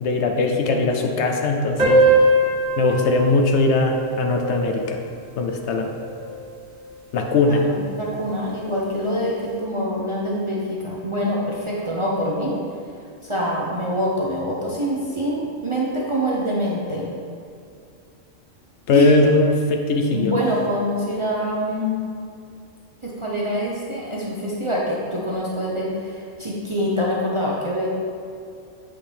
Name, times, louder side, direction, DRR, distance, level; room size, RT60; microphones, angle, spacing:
voice 1, 0.0-2.1 2.8-5.0 5.4-5.9 7.1-7.6 18.9-20.3, left 2 dB, 70° left, 3 dB, 0.9 m, -20 dB
sound 1, 1.8-6.8, right 1 dB, 70° right, 1.8 m, -22 dB
voice 2, 7.5-12.6 13.2-17.1 18.9-19.1 20.1-22.0 23.0-27.9, equal, 35° right, -5 dB, 0.5 m, -25 dB
7.7 x 4.4 x 3.4 m, 2.4 s
omnidirectional pair, 1.3 m